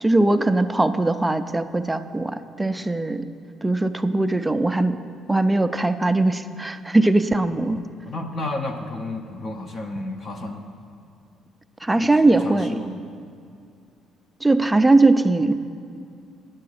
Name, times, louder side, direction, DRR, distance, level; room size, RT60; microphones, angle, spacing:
voice 1, 0.0-3.3 3.6-5.0 5.3-7.8 11.8-12.8 14.4-15.5, right 2 dB, 10° right, 9 dB, 0.3 m, -20 dB
voice 2, 8.0-10.6 12.0-13.0, left 2 dB, 30° left, 4 dB, 0.6 m, -32 dB
9.5 x 7.7 x 6.5 m, 2.4 s
cardioid pair, 160°, 0 cm